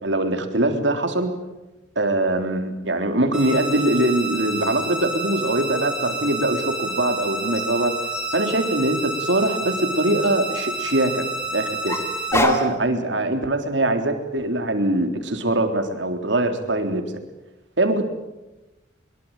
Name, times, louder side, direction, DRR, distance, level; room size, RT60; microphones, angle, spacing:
voice 1, 0.0-1.3 2.0-7.9 8.3-11.2 11.5-12.0 12.3-17.0 17.8-18.0, right 1 dB, 70° right, 6 dB, 3.6 m, -22 dB
sound 1, 3.3-12.3, right 2 dB, 5° right, 6.5 m, -29 dB
sound 2, 4.5-6.6 7.5-10.8 11.9-12.8, left 1 dB, 15° left, 3.2 m, -30 dB
23.5 x 22.5 x 9.0 m, 1.0 s
head